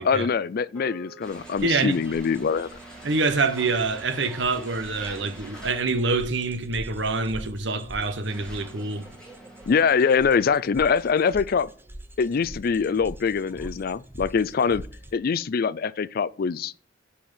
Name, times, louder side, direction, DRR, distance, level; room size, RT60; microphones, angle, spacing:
voice 1, 0.0-2.7 9.7-11.7 12.2-14.9 15.1-16.9, left 6 dB, 50° left, 0.4 m, -23 dB
sound 1, 0.7-5.3, right 3 dB, 30° left, 4.2 m, -51 dB
sound 2, 1.2-6.2 7.1-7.3 7.9-10.4, right 1 dB, 5° left, 2.8 m, -45 dB
sound 3, 1.3-15.1, right 1 dB, 10° right, 0.8 m, -44 dB
voice 2, 1.6-2.0 3.0-9.0, right 3 dB, 65° right, 1.1 m, -26 dB
10.5 x 4.4 x 7.5 m
head